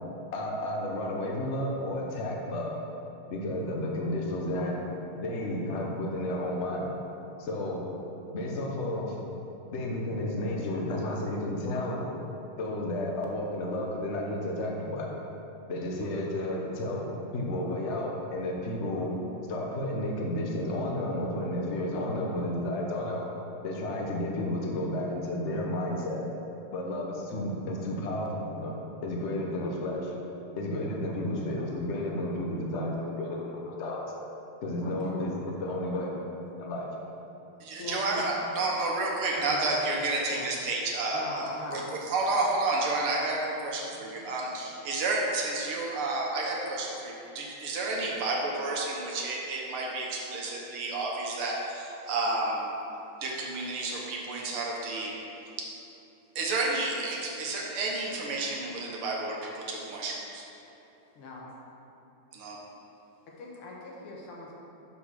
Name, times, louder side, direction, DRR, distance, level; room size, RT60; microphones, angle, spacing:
voice 1, 0.3-2.7 3.3-4.7 5.2-6.9 7.4-7.8 8.3-9.2 9.7-12.1 12.6-15.1 15.7-17.1 17.3-19.1 19.5-23.2 23.6-26.2 26.7-28.8 29.0-30.1 30.5-34.0 34.6-36.1 36.6-36.9, left 1 dB, 45° left, -1 dB, 1.0 m, -32 dB
voice 2, 34.8-35.2 37.7-38.3 39.4-39.9 40.3-40.5 41.1-41.9 43.9-44.6 61.2-61.5 63.3-64.5, left 3 dB, 85° left, -3 dB, 2.2 m, -42 dB
voice 3, 37.6-52.7 53.2-55.1 56.4-60.4 62.3-62.6, right 2 dB, 90° right, -2 dB, 2.0 m, -31 dB
6.1 x 5.9 x 6.3 m, 3.0 s
omnidirectional pair, 2.3 m